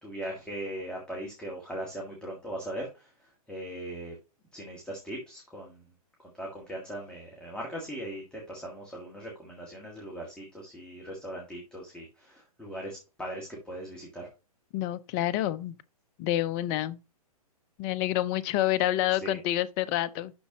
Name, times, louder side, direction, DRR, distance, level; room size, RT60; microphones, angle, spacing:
voice 1, 0.0-2.9 3.5-4.1 4.5-5.8 6.4-14.3 19.2-19.4, right 1 dB, 5° left, 1.7 m, -39 dB
voice 2, 14.7-15.7 16.2-17.0 17.8-20.3, left 14 dB, 25° left, 0.5 m, -28 dB
11.5 x 4.1 x 2.9 m
hypercardioid pair, 140°, 20 cm